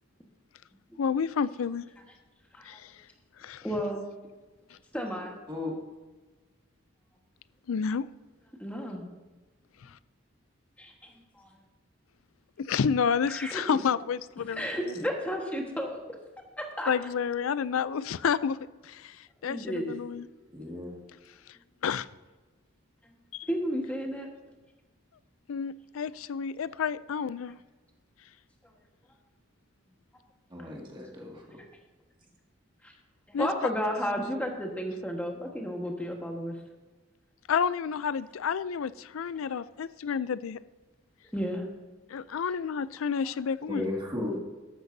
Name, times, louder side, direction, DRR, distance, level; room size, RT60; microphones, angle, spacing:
voice 1, 1.0-1.9 2.7-2.9 3.4-3.6 7.7-8.1 12.6-14.7 16.9-18.6 18.8-19.2 19.4-20.3 21.8-22.1 23.3-23.5 25.5-27.6 33.3-33.5 37.5-40.6 42.1-43.8, left 6 dB, 90° left, 17 dB, 0.4 m, -30 dB
voice 2, 3.6-4.0 4.9-5.3 8.6-9.0 10.8-11.5 13.3-13.8 14.5-16.0 16.8-16.9 19.4-20.0 23.5-24.3 30.6-30.7 32.8-32.9 33.3-36.5 41.3-41.7, equal, 5° left, 1 dB, 1.4 m, -32 dB
voice 3, 20.5-20.9 30.5-31.4 43.7-44.4, left 2 dB, 25° right, -2 dB, 2.0 m, -34 dB
13.5 x 12.5 x 2.7 m, 1.2 s
head